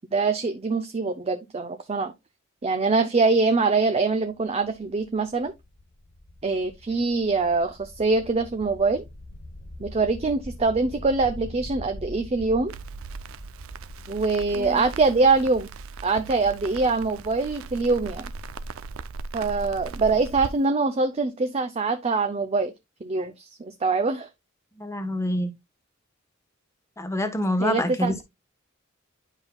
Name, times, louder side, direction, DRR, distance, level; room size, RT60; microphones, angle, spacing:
voice 1, 0.1-2.1 2.6-5.5 6.4-9.0 9.8-12.7 14.1-15.7 16.0-18.3 19.3-22.7 23.0-24.3 27.6-28.2, right 3 dB, 30° right, 0.6 m, -24 dB
sound 1, 4.2-17.9, left 1 dB, 55° left, 1.0 m, -43 dB
Crackle, 12.7-20.5, right 4 dB, 80° right, 0.5 m, -38 dB
voice 2, 14.5-14.9 24.8-25.5 27.0-28.2, left 1 dB, 15° left, 1.1 m, -27 dB
10.0 x 5.3 x 2.3 m
head